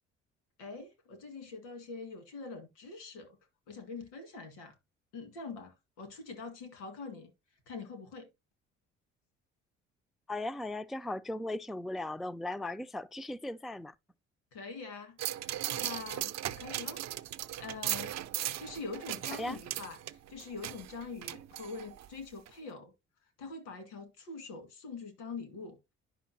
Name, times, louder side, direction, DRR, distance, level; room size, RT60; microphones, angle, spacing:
voice 1, 0.6-3.4 3.7-4.7 5.1-7.3 7.7-8.3 14.5-17.0 17.6-18.2 18.6-22.9 23.4-25.8, left 4 dB, 80° left, 2.0 m, -44 dB
voice 2, 10.3-13.9 19.4-19.6, left 2 dB, ahead, 0.4 m, -37 dB
sound 1, 15.2-22.1 22.5-22.6, right 12 dB, 50° right, 0.6 m, -38 dB
10.5 x 5.6 x 2.8 m
hypercardioid pair, 55°, 34 cm